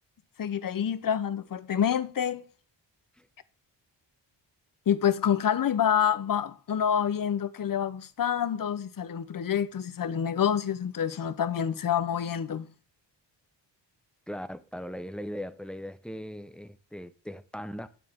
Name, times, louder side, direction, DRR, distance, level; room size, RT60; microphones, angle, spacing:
voice 1, 0.4-2.5 4.9-12.7, left 8 dB, 50° left, 0.8 m, -27 dB
voice 2, 14.3-17.9, equal, ahead, 0.6 m, -39 dB
8.4 x 6.9 x 3.6 m
wide cardioid pair, 100°, 44 cm